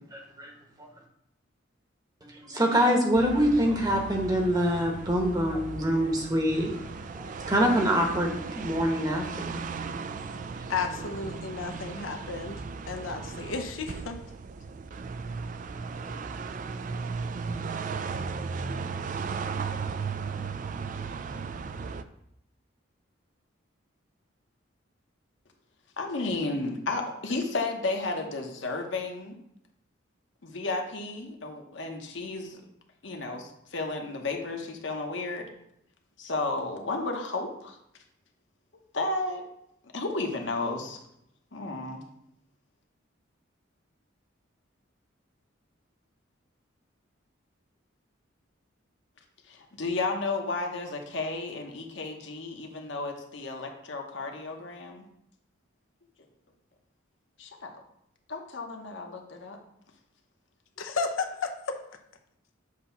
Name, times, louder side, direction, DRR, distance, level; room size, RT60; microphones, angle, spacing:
voice 1, 0.1-0.5 2.4-6.7 7.1-9.6, equal, 20° right, 1 dB, 1.0 m, -25 dB
sound 1, 3.1-22.0, right 5 dB, 40° right, 0.3 m, -36 dB
voice 2, 10.7-12.6 12.9-14.2 60.8-61.8, left 4 dB, 80° left, 6 dB, 0.7 m, -33 dB
voice 3, 26.0-29.3 30.4-32.6 33.0-35.5 36.2-37.8 38.9-39.4 39.9-41.0 41.5-42.0 49.5-55.0 57.4-57.7 58.3-59.6, left 3 dB, 65° left, 2 dB, 1.0 m, -33 dB
7.6 x 2.9 x 5.7 m, 0.76 s
head